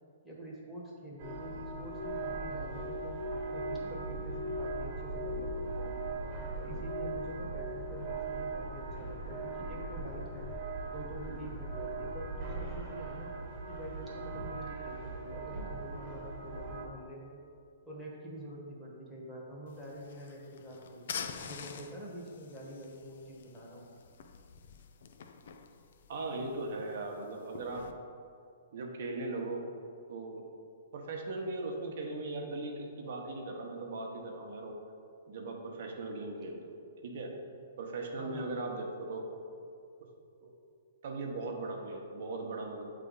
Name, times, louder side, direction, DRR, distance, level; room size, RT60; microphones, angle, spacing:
voice 1, 0.2-6.0 6.6-10.5 10.9-13.3 13.7-17.4 17.8-23.9 38.2-38.5, right 1 dB, 5° left, -6 dB, 1.2 m, -46 dB
sound 1, 1.2-16.9, right 2 dB, 35° right, 1.2 m, -39 dB
sound 2, 19.7-27.9, left 6 dB, 65° left, 0.4 m, -47 dB
voice 2, 26.1-27.8 28.7-29.6 30.1-30.5 30.9-34.8 35.3-36.8 37.0-37.3 37.8-39.3 40.4-40.5 41.0-42.8, right 2 dB, 60° right, 2 dB, 0.9 m, -38 dB
8.2 x 3.3 x 3.9 m, 2.4 s
hypercardioid pair, 150°, 0 cm